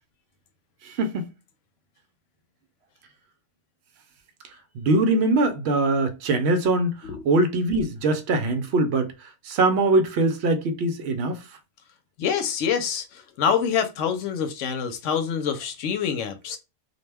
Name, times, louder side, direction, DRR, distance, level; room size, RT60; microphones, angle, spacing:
voice 1, 0.8-1.3 4.7-7.0 7.2-9.1 9.4-11.4, right 2 dB, 70° right, 0.8 m, -22 dB
voice 2, 12.2-16.6, left 7 dB, 90° left, 0.9 m, -26 dB
2.3 x 2.1 x 3.3 m
omnidirectional pair, 1.2 m